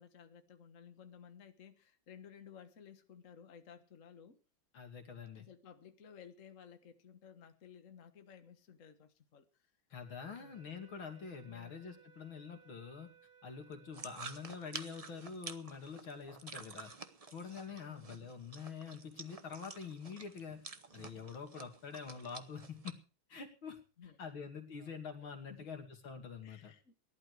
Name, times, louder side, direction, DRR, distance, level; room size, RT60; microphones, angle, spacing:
voice 1, 0.0-4.4 5.3-9.7 10.3-10.6 11.5-11.9 17.8-18.1 24.0-24.2 24.8-25.0 25.5-25.7 26.4-26.9, left 7 dB, 45° left, 1.7 m, -56 dB
voice 2, 4.7-5.5 9.9-13.1 13.4-16.9 17.3-20.6 20.9-23.0 23.3-23.8 24.2-26.7, left 6 dB, 85° left, 3.4 m, -46 dB
sound 1, 10.0-15.2, right 7 dB, 90° right, 2.5 m, -63 dB
sound 2, 13.9-22.9, right 4 dB, 30° right, 0.7 m, -50 dB
18.5 x 11.5 x 4.8 m
omnidirectional pair, 2.2 m